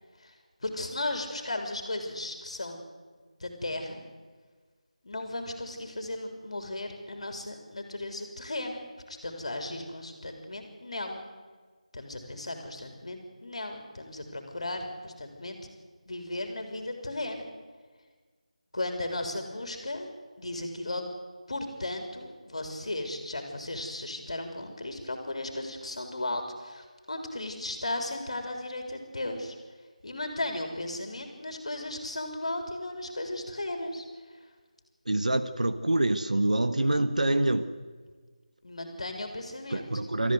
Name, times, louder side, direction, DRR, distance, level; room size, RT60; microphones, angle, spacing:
voice 1, 0.6-2.8 3.4-4.1 5.0-11.3 11.9-15.6 16.1-17.5 18.7-20.1 20.4-21.0 21.5-29.6 30.0-34.1 38.6-39.8, left 2 dB, 55° left, 4 dB, 3.6 m, -36 dB
voice 2, 35.0-37.7 39.7-40.3, right 1 dB, 70° right, 9 dB, 1.4 m, -26 dB
28.5 x 14.0 x 8.1 m, 1.5 s
figure-of-eight pair, 165°, 4 cm